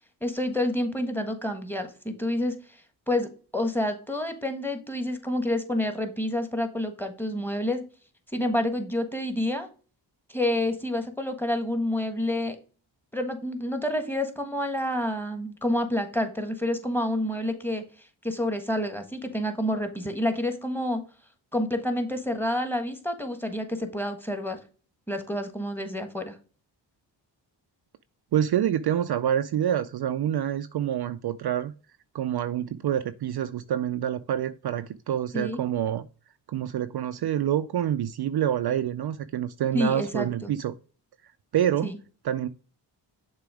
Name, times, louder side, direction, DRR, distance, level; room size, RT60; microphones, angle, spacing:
voice 1, 0.2-2.8 3.1-7.8 8.3-9.7 10.3-12.6 13.1-21.0 21.5-24.6 25.1-26.4 35.3-35.6 39.7-40.5 41.8-42.0, left 1 dB, 5° left, 1.4 m, -28 dB
voice 2, 28.3-31.7 32.1-36.1 36.5-40.7 41.5-41.9 42.2-42.5, right 10 dB, 55° right, 0.5 m, -27 dB
6.9 x 2.9 x 4.9 m
cardioid pair, 55°, 46 cm